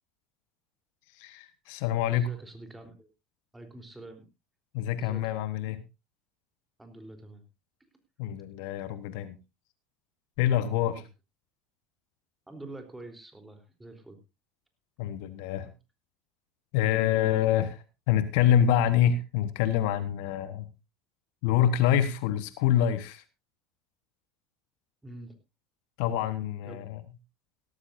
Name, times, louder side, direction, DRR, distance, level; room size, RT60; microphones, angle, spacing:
voice 1, 1.2-2.3 4.7-5.8 8.2-9.4 10.4-11.0 15.0-15.7 16.7-20.7 21.4-23.2 26.0-27.0, left 10 dB, 65° left, 13 dB, 1.2 m, -26 dB
voice 2, 2.1-3.1 3.5-4.2 5.0-5.4 6.8-7.4 10.8-11.0 12.5-14.2 16.8-17.2 25.0-25.3 26.6-26.8, right 2 dB, 10° right, 6 dB, 3.5 m, -46 dB
17.5 x 13.5 x 2.6 m, 0.25 s
hypercardioid pair, 75°, 0 cm